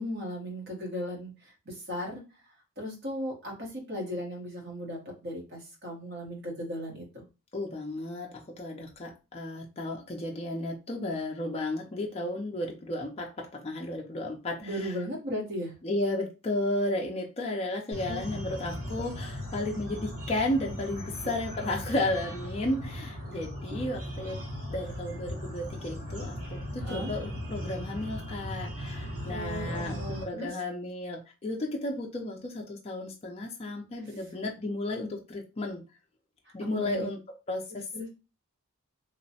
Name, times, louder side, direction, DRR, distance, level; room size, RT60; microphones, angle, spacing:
voice 1, 0.0-2.2 2.8-7.2 14.6-15.7 18.1-18.2 26.8-27.1 29.3-30.5 36.7-37.1 37.7-38.1, equal, 45° right, -1 dB, 1.0 m, -36 dB
voice 2, 7.5-14.9 15.8-24.4 24.7-35.8 36.5-37.2 37.5-37.9, left 1 dB, 25° left, 0 dB, 0.3 m, -33 dB
sound 1, 17.9-30.2, equal, 75° right, 1.0 m, -38 dB
3.0 x 2.1 x 2.7 m, 0.30 s
head